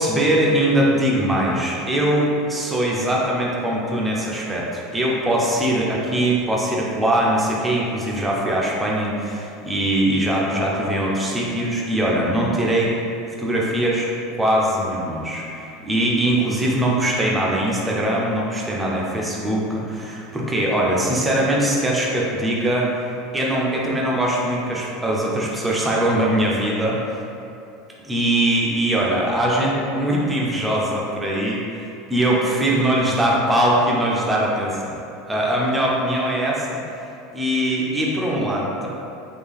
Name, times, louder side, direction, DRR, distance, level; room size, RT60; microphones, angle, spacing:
voice 1, 0.0-12.9 13.4-22.9 23.3-27.0 28.0-35.0 35.2-36.8 37.3-38.9, right 1 dB, 10° right, -4 dB, 0.4 m, -21 dB
3.6 x 2.2 x 3.4 m, 2.6 s
supercardioid pair, 150°, 0 cm